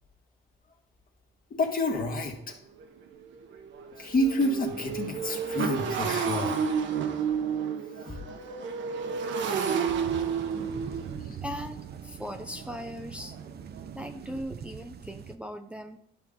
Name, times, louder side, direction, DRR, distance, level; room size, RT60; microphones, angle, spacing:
voice 1, 1.5-2.4 4.0-6.6 8.1-8.2 9.9-10.0 11.2-11.4, left 1 dB, 45° left, 2 dB, 2.0 m, -29 dB
Motorcycle, 1.8-1.9 2.4-2.5 2.8-14.4, right 6 dB, 70° right, 1.2 m, -32 dB
sound 1, 10.0-15.4, right 8 dB, 55° right, 0.7 m, -43 dB
voice 2, 11.2-13.4 13.9-16.0, equal, 5° right, 4 dB, 0.7 m, -39 dB
11.5 x 5.8 x 3.9 m, 0.68 s
cardioid pair, 90°, 20 cm